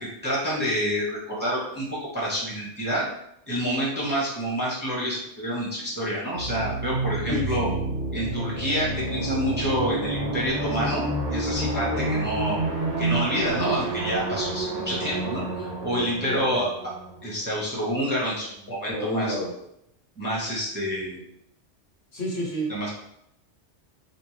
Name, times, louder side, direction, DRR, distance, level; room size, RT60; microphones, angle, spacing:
voice 1, 0.0-3.1 3.5-7.7 8.1-12.6 13.0-16.7 17.2-19.3 20.2-21.2 22.7-22.9, equal, 10° right, -7 dB, 0.8 m, -28 dB
sound 1, 6.4-17.9, right 2 dB, 50° right, 0.6 m, -29 dB
voice 2, 7.3-7.8 11.9-12.1 15.9-16.7 18.9-19.6 22.1-22.9, left 1 dB, 65° left, -4 dB, 1.3 m, -31 dB
3.5 x 2.7 x 3.1 m, 0.77 s
omnidirectional pair, 1.2 m